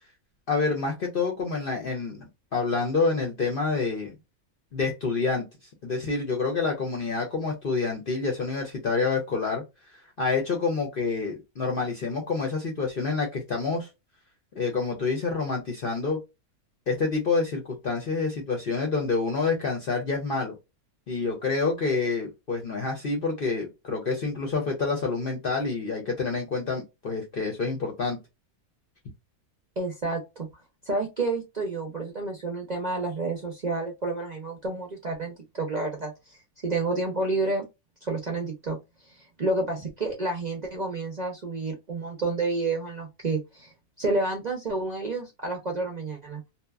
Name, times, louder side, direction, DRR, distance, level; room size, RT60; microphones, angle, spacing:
voice 1, 0.5-2.2 2.5-4.1 4.7-5.5 5.8-9.6 10.2-13.9 14.5-16.2 16.9-20.5 21.1-28.2, left 4 dB, 55° left, 1 dB, 0.6 m, -27 dB
voice 2, 29.8-30.5 30.9-37.7 38.0-38.8 39.1-43.7 44.0-46.4, right 3 dB, 45° right, 1 dB, 0.6 m, -30 dB
2.8 x 2.2 x 2.3 m, 0.23 s
omnidirectional pair, 1.6 m